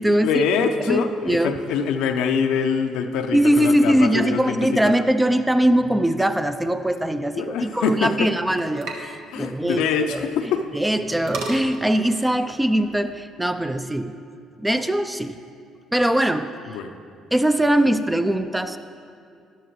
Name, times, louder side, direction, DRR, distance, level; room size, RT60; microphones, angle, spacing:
voice 1, 0.1-4.6 4.8-4.9 7.4-8.3 9.3-10.6 16.7-16.9, left 6 dB, 70° left, 6 dB, 0.6 m, -24 dB
voice 2, 0.9-1.5 3.3-9.8 10.1-10.2 10.7-14.2 14.6-15.4 15.9-16.5 17.3-18.8, right 1 dB, 10° right, 9 dB, 0.5 m, -21 dB
sound 1, 6.8-13.2, right 2 dB, 70° right, 1.3 m, -39 dB
12.5 x 11.5 x 3.2 m, 2.4 s
hypercardioid pair, 55°, 0 cm